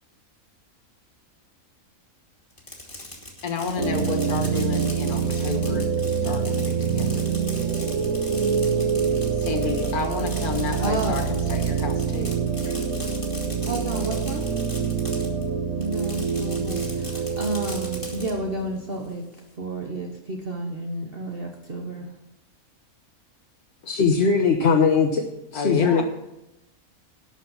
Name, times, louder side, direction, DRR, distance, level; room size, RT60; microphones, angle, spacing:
Fireworks, 2.5-15.4 15.8-18.3, left 1 dB, 20° left, 2.2 m, -39 dB
voice 1, 3.4-5.9 6.2-7.3 9.4-12.3 12.6-12.8 23.8-23.9 25.5-26.0, left 4 dB, 85° left, 5 dB, 2.0 m, -30 dB
sound 1, 3.8-18.7, right 6 dB, 80° right, 1.6 m, -26 dB
voice 2, 10.8-11.3 13.6-14.5 15.8-19.2 19.6-22.1, right 2 dB, 45° right, 1 dB, 1.3 m, -31 dB
voice 3, 23.9-25.3 25.5-26.0, left 5 dB, 50° left, 1 dB, 1.1 m, -20 dB
12.0 x 6.1 x 7.0 m, 0.90 s
omnidirectional pair, 1.5 m